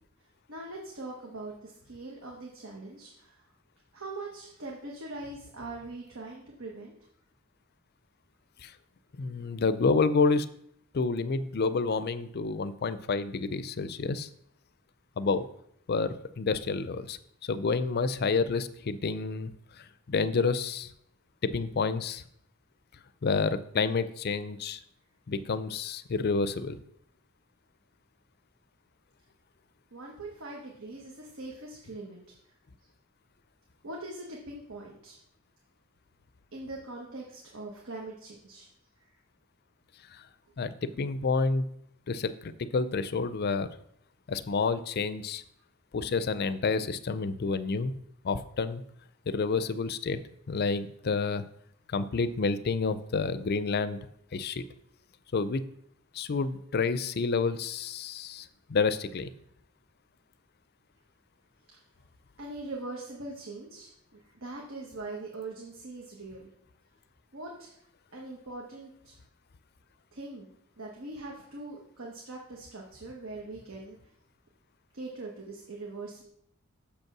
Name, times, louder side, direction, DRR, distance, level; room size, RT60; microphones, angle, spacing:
voice 1, 0.5-3.3 3.9-6.9 29.9-32.2 33.8-35.2 36.5-38.7 62.4-66.5 67.3-67.7 68.1-69.1 70.1-70.5 70.8-74.0 74.9-76.3, right 2 dB, 70° right, -1 dB, 1.3 m, -42 dB
voice 2, 9.2-10.5 10.9-14.3 15.2-15.5 15.9-19.5 19.8-20.9 21.4-22.2 23.2-24.8 25.3-26.8 40.1-40.2 40.6-41.6 42.1-43.7 44.3-45.4 45.9-47.9 48.2-48.8 49.3-50.2 50.5-51.4 51.9-54.0 54.3-54.6 55.3-55.6 56.1-59.3, left 4 dB, 50° left, 13 dB, 0.5 m, -29 dB
6.8 x 5.4 x 5.9 m, 0.72 s
head